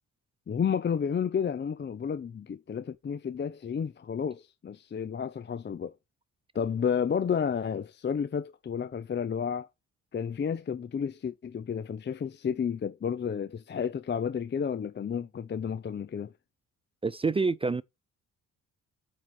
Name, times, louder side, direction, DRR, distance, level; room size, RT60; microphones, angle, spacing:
voice 1, 0.5-5.9 6.5-9.7 10.1-16.3, left 7 dB, 35° left, 0.6 m, -31 dB
voice 2, 17.0-17.8, right 4 dB, 20° right, 0.3 m, -27 dB
7.8 x 4.2 x 4.3 m
cardioid pair, 85°, 32 cm